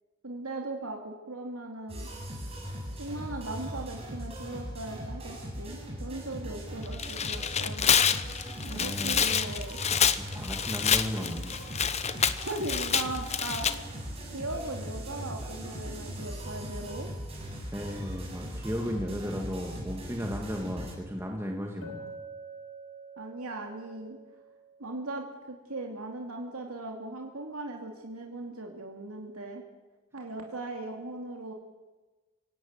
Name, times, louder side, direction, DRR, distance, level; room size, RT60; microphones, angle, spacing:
voice 1, 0.2-2.1 3.0-7.9 8.6-9.8 12.4-13.9 14.3-17.1 23.2-24.2 24.8-29.6 30.1-31.5, right 2 dB, 85° right, 1 dB, 2.6 m, -38 dB
sound 1, 1.9-20.9, equal, 30° right, 7.9 m, -39 dB
Tearing, 6.9-13.7, left 8 dB, 30° left, 1.0 m, -27 dB
voice 2, 8.8-9.4 10.3-11.7 17.7-22.1, equal, 10° right, 1 dB, 2.3 m, -35 dB
Chink clink, 21.8-25.8, right 3 dB, 75° left, 2.5 m, -47 dB
26.0 x 17.0 x 9.1 m, 1.2 s
head